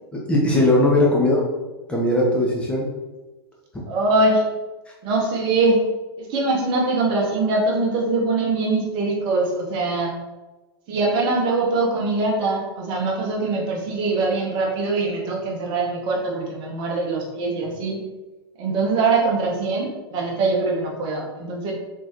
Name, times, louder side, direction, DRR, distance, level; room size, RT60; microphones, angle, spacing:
voice 1, 0.1-1.4 1.9-2.9, left 1 dB, 10° left, -4 dB, 0.9 m, -19 dB
voice 2, 3.9-4.5 5.0-5.9 6.2-10.1 10.9-18.0 18.6-21.7, right 3 dB, 35° right, -1 dB, 1.2 m, -22 dB
4.3 x 3.9 x 3.0 m, 1.1 s
figure-of-eight pair, 100°, 13 cm